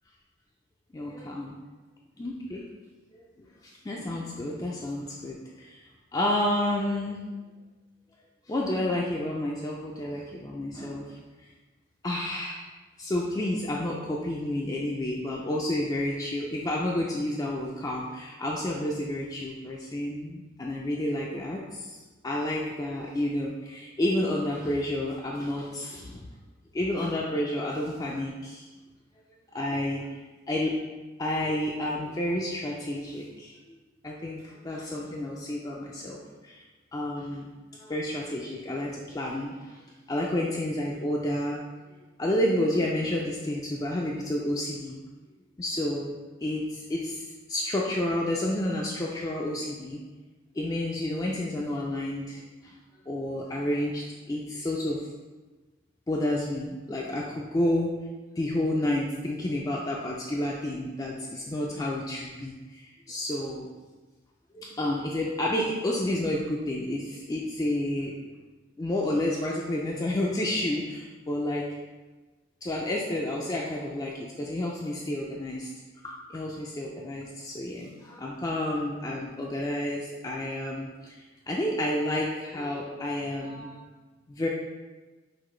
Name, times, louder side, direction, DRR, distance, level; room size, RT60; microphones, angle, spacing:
voice 1, 0.9-1.6 2.2-2.6 3.4-5.8 6.1-7.2 8.5-11.2 12.0-12.7 13.0-22.0 22.2-26.3 26.7-28.7 29.5-30.2 30.5-30.8 31.2-33.8 34.0-36.6 36.9-39.8 40.1-41.7 42.2-45.0 45.6-46.1 46.4-50.0 50.6-52.8 53.1-55.0 56.1-57.9 58.4-63.7 64.5-68.1 68.8-71.6 72.6-75.7 76.0-83.8 84.3-84.5, left 1 dB, 20° left, -3 dB, 0.3 m, -30 dB
5.8 x 2.5 x 3.1 m, 1.3 s
head